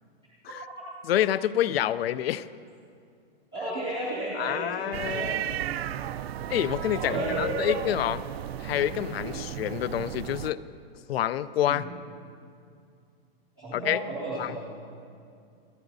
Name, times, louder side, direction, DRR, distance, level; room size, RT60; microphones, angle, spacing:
voice 1, 1.1-2.5 4.3-5.4 6.5-8.2 8.6-10.6 11.1-11.9 13.7-14.0 14.4-14.6, left 11 dB, 70° left, 17 dB, 0.4 m, -27 dB
voice 2, 3.5-5.8 6.9-7.7 9.1-9.4 11.7-11.9 13.6-14.6, right 1 dB, 5° right, -12 dB, 0.3 m, -33 dB
sound 1, 4.9-10.5, right 11 dB, 75° right, 0.5 m, -34 dB
25.5 x 9.5 x 2.6 m, 2.4 s
hypercardioid pair, 180°, 31 cm